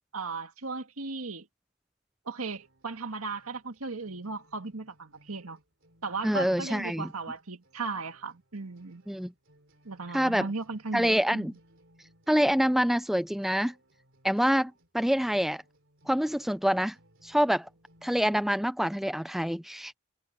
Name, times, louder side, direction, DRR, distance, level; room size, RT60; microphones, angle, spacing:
voice 1, 0.1-1.5 2.3-5.6 6.0-9.0 9.9-11.5, right 3 dB, 80° right, 1.9 m, -36 dB
sound 1, 2.5-18.6, equal, 60° right, 3.5 m, -63 dB
voice 2, 6.2-7.1 9.1-9.3 10.1-10.5 10.9-11.5 12.3-13.7 14.2-15.6 16.1-17.0 17.2-17.7 18.0-20.0, equal, ahead, 0.4 m, -26 dB
head